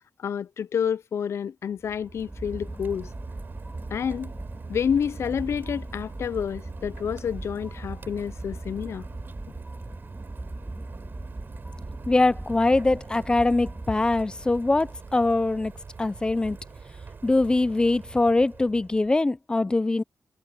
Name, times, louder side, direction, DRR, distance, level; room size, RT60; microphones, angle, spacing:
voice 1, 0.2-3.1 3.9-4.3 4.7-9.1, left 7 dB, 75° left, 0.4 m, -29 dB
sound 1, 1.8-15.9, right 1 dB, 15° right, 3.2 m, -40 dB
Rain, 1.9-19.2, right 5 dB, 50° right, 5.9 m, -43 dB
voice 2, 12.1-15.7 16.0-16.6 17.2-20.0, left 2 dB, 20° left, 0.5 m, -22 dB
wide cardioid pair, 145°, 5 cm